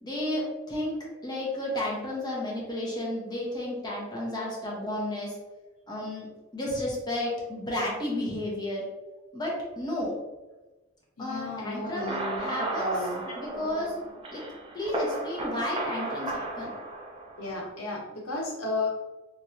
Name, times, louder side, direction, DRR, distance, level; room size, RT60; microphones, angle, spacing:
voice 1, 0.0-1.0 1.2-5.3 5.9-6.3 6.5-8.8 9.3-10.1 11.2-13.0 13.4-13.9 14.3-14.4 14.7-16.7, left 1 dB, 20° left, -4 dB, 0.8 m, -32 dB
voice 2, 11.2-13.4 17.4-18.9, left 2 dB, 85° left, -2 dB, 1.0 m, -33 dB
sound 1, 11.8-17.6, right 2 dB, 25° right, 0.4 m, -35 dB
3.1 x 3.0 x 2.7 m, 1.1 s
head